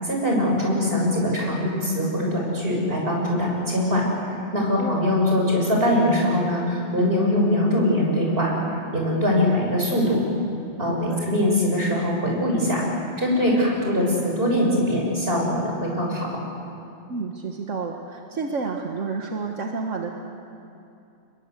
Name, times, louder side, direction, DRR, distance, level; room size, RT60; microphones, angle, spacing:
voice 1, 0.0-10.2 10.8-16.3, left 1 dB, 50° right, -2 dB, 7.4 m, -22 dB
voice 2, 4.8-5.1 10.9-11.2 17.1-20.1, right 4 dB, 85° right, 2 dB, 1.9 m, -30 dB
29.0 x 22.0 x 8.3 m, 2.7 s
omnidirectional pair, 1.3 m